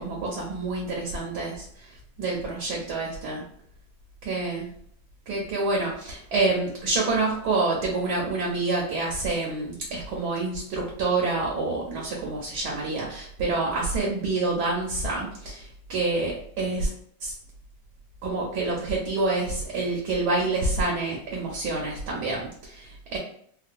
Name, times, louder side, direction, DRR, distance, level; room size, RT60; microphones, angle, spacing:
voice 1, 0.0-3.4 4.2-4.7 5.3-16.9 17.2-17.3 18.2-23.2, right 3 dB, 65° right, -2 dB, 1.2 m, -27 dB
3.7 x 2.2 x 2.5 m, 0.63 s
omnidirectional pair, 2.1 m